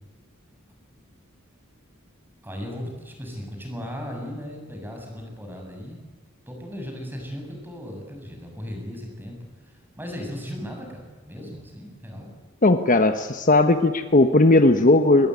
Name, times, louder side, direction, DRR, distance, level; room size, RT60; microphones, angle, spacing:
voice 1, 2.4-6.0 6.5-12.3, equal, 10° right, 2 dB, 7.0 m, -37 dB
voice 2, 12.6-15.3, left 2 dB, 40° left, 8 dB, 1.1 m, -17 dB
23.5 x 20.5 x 9.7 m, 1.4 s
head